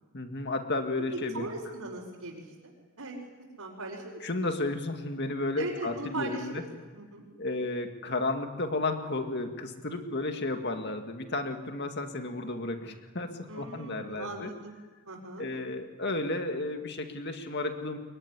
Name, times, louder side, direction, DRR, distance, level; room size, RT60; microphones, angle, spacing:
voice 1, 0.1-1.5 4.2-6.6 7.4-14.5 15.4-18.0, left 2 dB, 50° left, 6 dB, 2.0 m, -33 dB
voice 2, 1.3-2.7 3.0-3.1 3.6-4.2 5.6-6.7 6.9-7.2 13.5-14.7 15.1-15.5, right 2 dB, 85° right, -5 dB, 4.7 m, -39 dB
23.5 x 22.5 x 10.0 m, 1.4 s
head